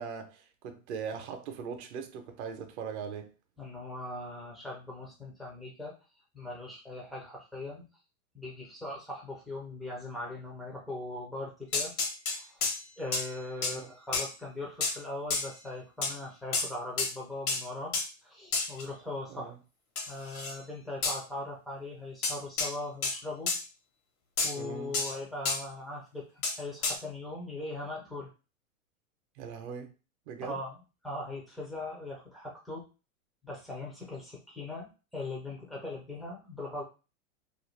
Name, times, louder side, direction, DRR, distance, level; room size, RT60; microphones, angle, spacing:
voice 1, 0.0-3.3 13.6-13.9 19.3-19.5 24.6-25.0 29.4-29.9 30.3-30.6, right 6 dB, 55° right, 0.6 m, -40 dB
voice 2, 3.6-5.9 6.3-7.8 8.3-11.9 12.3-12.7 13.0-17.9 18.2-19.5 20.1-23.5 24.4-28.3 30.4-30.8 31.0-32.8 33.4-36.8, left 2 dB, ahead, 0.3 m, -40 dB
sound 1, 11.7-12.8 13.1-13.3 13.6-13.8 14.1-14.3 14.8-15.0 15.3-15.5 16.0-16.1 16.5-16.7 17.0-17.1 17.5-17.6 17.9-18.1 18.5-18.8 20.0-20.6 21.0-21.2 22.2-22.7 23.0-23.2 23.5-23.6 24.4-24.6 24.9-25.1 25.5-25.6 26.4-26.6 26.8-27.0, left 4 dB, 80° left, 1.0 m, -30 dB
2.5 x 2.3 x 3.0 m
hypercardioid pair, 115°, 42 cm